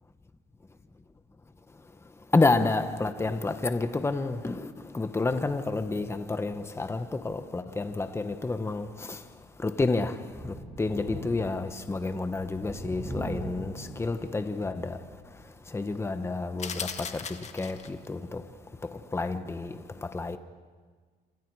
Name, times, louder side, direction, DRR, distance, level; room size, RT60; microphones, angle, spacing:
voice 1, 2.3-9.2 9.6-15.0 15.7-17.2 17.5-18.4 19.1-19.7 20.0-20.4, left 3 dB, 15° left, 1.2 m, -29 dB
Thunder, 10.3-15.3 15.8-15.9 17.2-17.3, right 1 dB, 10° right, 6.7 m, -41 dB
sound 1, 16.6-18.1, left 6 dB, 40° left, 1.6 m, -37 dB
27.5 x 27.0 x 4.8 m
cardioid pair, 110°, 17 cm